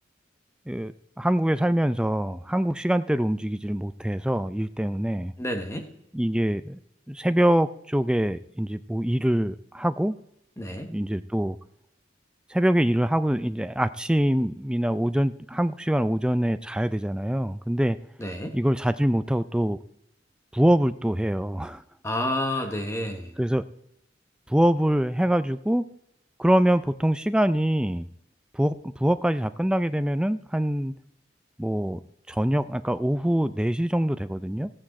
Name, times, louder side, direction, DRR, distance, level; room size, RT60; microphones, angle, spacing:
voice 1, 1.2-5.3 6.1-6.8 7.1-10.1 10.9-11.6 12.5-18.0 18.5-19.8 20.5-21.8 23.4-23.6 24.5-25.8 26.4-28.1 28.5-30.9 31.6-32.0 32.3-34.7, equal, 5° right, 12 dB, 0.4 m, -24 dB
voice 2, 5.4-5.9 10.6-10.9 18.2-18.6 22.0-23.3, left 1 dB, 15° left, 5 dB, 1.1 m, -29 dB
15.0 x 8.9 x 4.2 m, 0.78 s
head